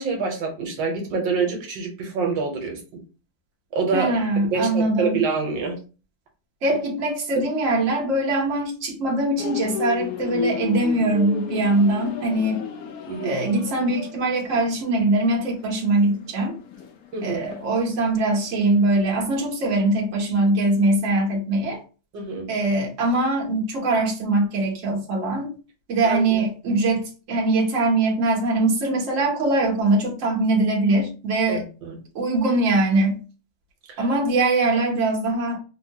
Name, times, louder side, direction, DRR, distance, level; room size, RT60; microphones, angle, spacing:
voice 1, 0.0-3.0 3.7-4.1 4.5-5.8 13.1-13.4 17.1-17.4 22.1-22.5 26.0-26.4 31.5-32.0 34.0-34.1, right 4 dB, 75° right, 1.4 m, -26 dB
voice 2, 3.9-5.2 6.6-12.6 13.2-16.6 17.2-21.8 22.5-25.5 25.9-31.6 32.1-33.2 34.0-35.6, right 2 dB, 50° right, 1.1 m, -22 dB
sound 1, 9.4-18.4 18.8-19.0, left 6 dB, 75° left, 0.8 m, -32 dB
3.6 x 2.2 x 2.7 m
omnidirectional pair, 2.1 m